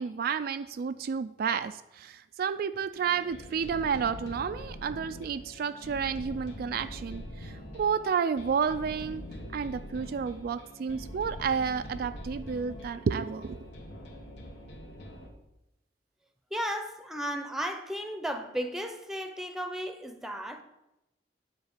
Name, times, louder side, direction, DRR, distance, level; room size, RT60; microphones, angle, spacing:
voice 1, 0.0-9.2 9.5-13.6, right 6 dB, 55° right, 0.3 m, -31 dB
sound 1, 2.9-15.3, equal, 80° left, 1.6 m, -44 dB
voice 2, 16.5-20.6, equal, ahead, 0.7 m, -34 dB
9.6 x 4.2 x 7.3 m
head